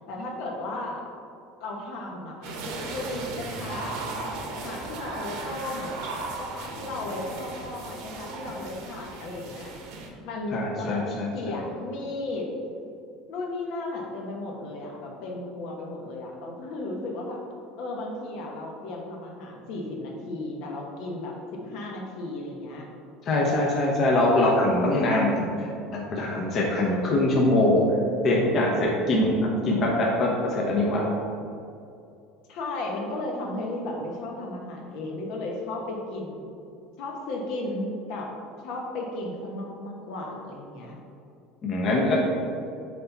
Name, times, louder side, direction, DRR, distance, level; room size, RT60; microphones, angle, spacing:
voice 1, 0.1-1.0 1.6-6.0 6.4-9.7 10.2-12.5 13.3-17.4 17.8-22.9 24.3-24.5 32.5-36.4 37.0-38.3 38.6-41.0, left 2 dB, 60° left, -1 dB, 1.1 m, -35 dB
sound 1, 2.4-10.1, right 3 dB, 65° right, 1.0 m, -36 dB
voice 2, 10.5-11.3 23.3-25.7 25.9-27.8 28.2-31.0 41.6-42.2, left 1 dB, 35° left, -3 dB, 0.9 m, -23 dB
6.5 x 4.1 x 4.0 m, 2.5 s
cardioid pair, 150°, 0 cm